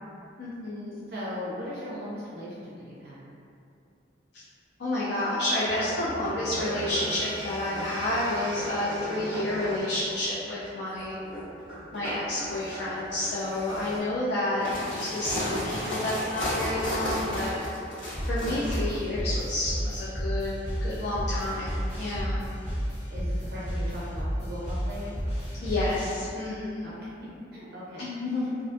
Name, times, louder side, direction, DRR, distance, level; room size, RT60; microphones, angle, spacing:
voice 1, 0.4-1.1 4.8-11.2 11.9-14.7 15.1-17.6 18.2-20.5 20.8-22.4 25.6-26.9 28.0-28.5, left 1 dB, 60° left, -8 dB, 0.4 m, -30 dB
voice 2, 1.1-3.3 23.1-25.2 26.8-27.1 27.5-28.1, left 1 dB, 50° right, -8 dB, 0.4 m, -38 dB
sound 1, 5.7-14.0, right 1 dB, 5° right, 0.6 m, -37 dB
sound 2, 14.5-18.8, left 1 dB, 85° left, 1.2 m, -31 dB
sound 3, 18.1-26.1, equal, 35° left, 0.8 m, -32 dB
2.4 x 2.2 x 2.5 m, 2.5 s
head